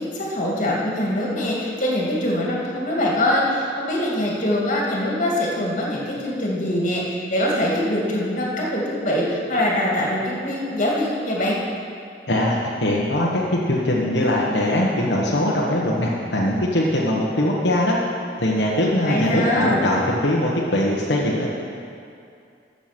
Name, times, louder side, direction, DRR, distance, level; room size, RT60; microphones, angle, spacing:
voice 1, 0.0-11.6 19.0-19.8, left 1 dB, 45° left, -4 dB, 2.6 m, -23 dB
voice 2, 12.3-18.0 18.4-21.5, left 1 dB, 80° left, -4 dB, 1.4 m, -21 dB
14.0 x 7.0 x 6.1 m, 2.4 s
head